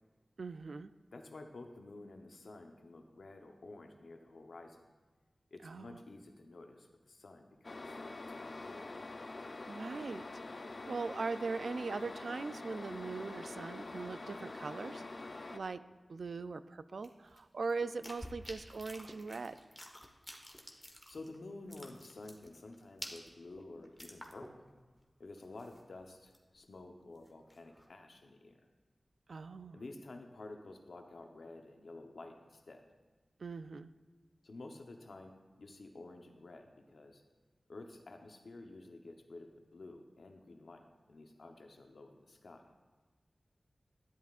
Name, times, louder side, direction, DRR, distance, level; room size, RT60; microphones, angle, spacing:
voice 1, 0.4-0.9 5.6-6.0 9.7-10.2 10.5-15.8 16.1-19.6 29.3-29.8 33.4-33.9, right 4 dB, 85° right, 13 dB, 0.3 m, -40 dB
voice 2, 1.1-4.9 5.5-8.0 8.3-9.0 20.5-24.7 25.2-28.6 29.7-32.9 34.4-37.2 37.7-42.7, left 2 dB, 80° left, 4 dB, 0.9 m, -51 dB
sound 1, 7.6-15.6, left 2 dB, 60° left, 0.5 m, -45 dB
sound 2, 17.0-21.4 21.6-24.7 25.0-25.1 25.4-26.6 27.0-27.9, equal, ahead, 1.3 m, -50 dB
13.0 x 10.5 x 2.5 m, 1.3 s
wide cardioid pair, 55°, 0 cm